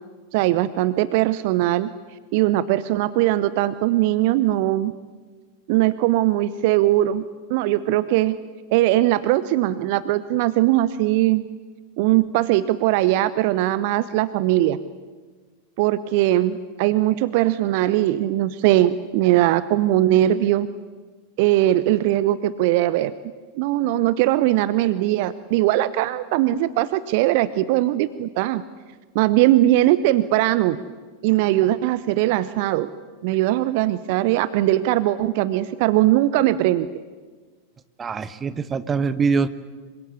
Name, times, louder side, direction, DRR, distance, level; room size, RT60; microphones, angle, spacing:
voice 1, 0.3-1.9 2.3-4.9 5.7-7.2 7.5-8.4 8.7-11.4 12.0-14.8 15.8-20.7 21.4-23.1 23.5-28.6 29.1-30.8 31.2-32.9 33.2-36.9, right 15 dB, 50° right, 16 dB, 0.9 m, -20 dB
voice 2, 38.0-39.5, right 5 dB, 20° right, 13 dB, 1.4 m, -23 dB
27.0 x 24.0 x 8.3 m, 1.4 s
figure-of-eight pair, 90°, 0 cm